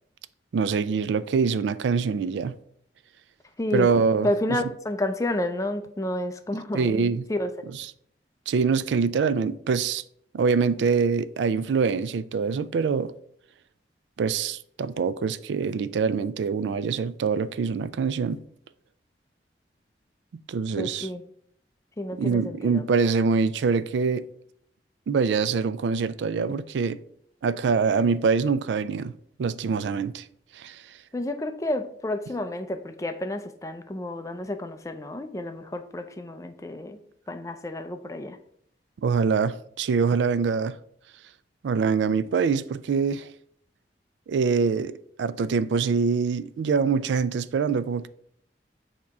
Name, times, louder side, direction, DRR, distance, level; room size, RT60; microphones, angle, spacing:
voice 1, 0.5-2.6 3.7-4.3 6.7-7.2 8.5-10.0 10.3-13.1 14.2-18.4 20.5-21.1 22.2-24.3 25.1-27.0 27.4-29.1 29.4-30.2 30.6-30.8 39.0-40.8 41.6-43.3 44.3-44.9 45.2-48.1, right 5 dB, 90° right, 0.3 m, -24 dB
voice 2, 3.6-3.9 4.2-7.5 20.8-21.3 22.0-22.8 31.1-37.0 37.3-38.4, left 1 dB, 20° left, 0.4 m, -30 dB
7.1 x 2.9 x 4.6 m
head